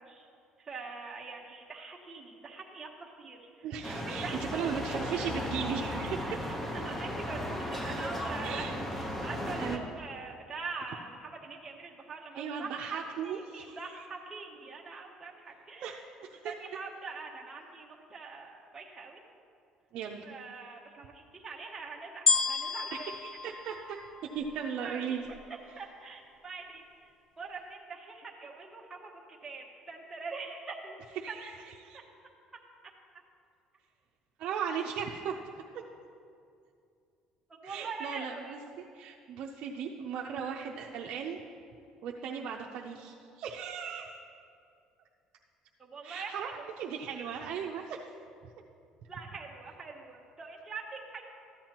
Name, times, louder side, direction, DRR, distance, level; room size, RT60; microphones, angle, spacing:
voice 1, 0.6-3.4 3.9-4.4 5.1-5.3 6.3-8.6 8.9-16.0 16.4-19.2 20.2-23.1 24.8-25.2 25.8-26.8 27.4-29.1 29.4-31.0 31.3-31.4 37.5-38.6 45.8-46.7 49.1-51.3, right 4 dB, 15° right, -3 dB, 1.0 m, -43 dB
voice 2, 3.6-6.2 8.4-8.8 9.5-9.8 12.3-14.1 15.8-16.0 16.3-16.5 19.9-20.3 22.9-24.0 24.3-25.3 31.2-32.0 34.4-35.3 35.7-35.8 37.6-41.4 42.0-44.2 46.0-48.0, right 7 dB, 60° right, -1 dB, 0.5 m, -37 dB
sound 1, 3.8-9.8, equal, 15° left, 0.9 m, -35 dB
sound 2, 22.3-24.7 25.3-25.4, left 4 dB, 35° left, 0.5 m, -30 dB
13.5 x 9.0 x 2.9 m, 2.5 s
cardioid pair, 120°, 2 cm